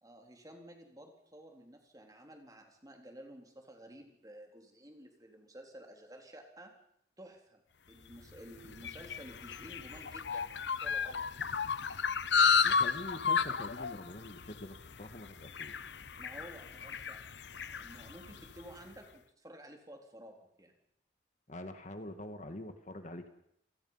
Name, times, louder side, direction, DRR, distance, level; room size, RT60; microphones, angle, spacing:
voice 1, 0.0-6.7 7.2-7.6 7.9-11.2 16.2-17.2 17.8-20.7, right 1 dB, 20° right, 3 dB, 3.6 m, -52 dB
sound 1, 8.1-18.7, left 5 dB, 75° left, 0.9 m, -33 dB
voice 2, 12.6-15.9 21.5-23.3, left 1 dB, 45° left, 7 dB, 1.8 m, -45 dB
28.5 x 19.0 x 5.7 m, 0.71 s
head